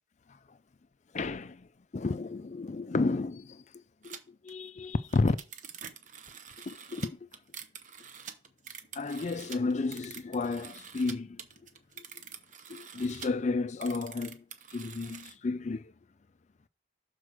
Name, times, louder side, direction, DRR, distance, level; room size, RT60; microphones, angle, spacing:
voice 1, 1.1-5.4 6.7-7.2 8.9-11.4 12.0-12.1 12.7-14.4 14.7-15.9, left 3 dB, 35° left, 0.4 m, -32 dB
sound 1, 4.0-4.2 4.5-4.6 4.9-11.1 11.4-13.3 13.7-15.3, right 7 dB, 40° right, 0.8 m, -46 dB
6.5 x 4.4 x 6.1 m
head